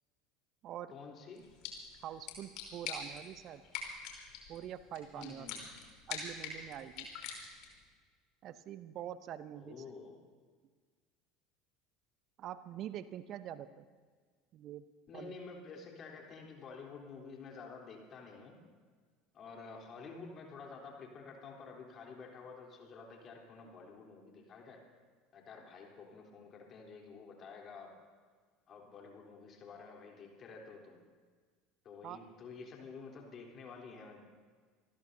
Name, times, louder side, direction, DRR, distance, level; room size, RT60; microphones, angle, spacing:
voice 1, 0.9-1.5 5.1-5.6 9.6-10.2 15.1-18.6 19.3-24.8 25.3-27.9 28.7-31.0 31.8-34.2, left 4 dB, 35° left, 0 dB, 3.5 m, -50 dB
sound 1, 1.3-7.8, left 5 dB, 55° left, 3.7 m, -45 dB
voice 2, 2.0-3.6 4.5-5.5 6.1-7.1 8.4-9.9 12.4-13.9 14.5-14.8 15.1-15.3 32.0-32.2, right 11 dB, 45° right, 14 dB, 0.7 m, -45 dB
27.0 x 19.0 x 2.8 m, 1.5 s
figure-of-eight pair, 70°, 0 cm